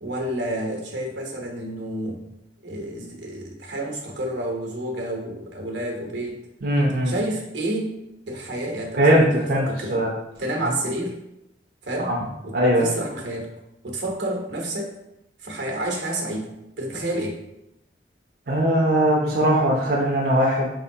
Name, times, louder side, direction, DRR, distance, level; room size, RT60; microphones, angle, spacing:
voice 1, 0.0-2.2 2.6-6.4 7.0-8.0 8.3-10.0 10.4-11.2 11.8-12.1 12.4-13.5 13.8-14.9 15.4-17.4, right 1 dB, 85° right, 1 dB, 0.9 m, -29 dB
voice 2, 6.6-7.1 9.0-9.7 9.9-10.1 12.0-12.2 12.5-12.9 18.5-20.7, right 1 dB, 60° right, -2 dB, 0.6 m, -20 dB
4.5 x 3.3 x 2.7 m, 0.86 s
head